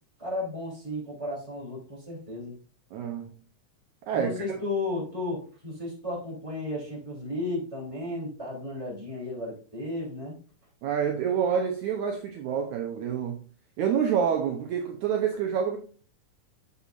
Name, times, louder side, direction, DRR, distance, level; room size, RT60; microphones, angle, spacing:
voice 1, 0.2-2.5 4.1-10.4, left 2 dB, 10° right, 3.1 m, -34 dB
voice 2, 2.9-3.4 4.1-4.6 10.8-13.4 13.8-15.8, right 7 dB, 70° right, 2.0 m, -27 dB
8.3 x 6.7 x 2.6 m
omnidirectional pair, 3.8 m